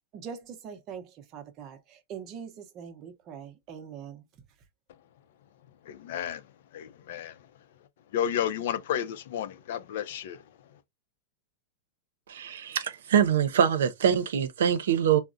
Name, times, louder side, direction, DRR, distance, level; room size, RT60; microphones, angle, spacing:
voice 1, 0.1-4.2, right 7 dB, 30° right, 0.6 m, -42 dB
voice 2, 5.9-6.4 6.7-7.3 8.1-10.4, left 9 dB, 65° left, 0.4 m, -31 dB
voice 3, 12.3-15.2, right 8 dB, 85° right, 0.6 m, -24 dB
3.5 x 2.0 x 2.5 m
supercardioid pair, 150°, 0 cm